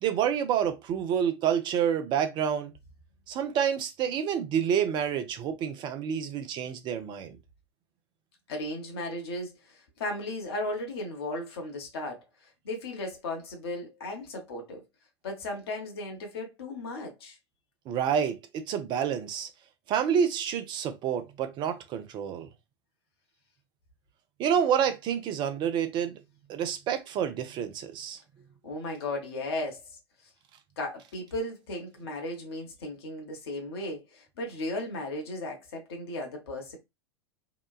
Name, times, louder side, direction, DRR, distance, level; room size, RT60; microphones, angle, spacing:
voice 1, 0.0-2.7 3.3-7.4 17.9-19.5 19.9-22.5 24.4-26.2 26.5-28.2, right 8 dB, 30° right, 0.5 m, -28 dB
voice 2, 8.5-14.8 15.2-17.4 28.6-29.8 30.8-36.8, left 1 dB, 60° left, 1.0 m, -36 dB
2.9 x 2.2 x 2.3 m
figure-of-eight pair, 90°, 14 cm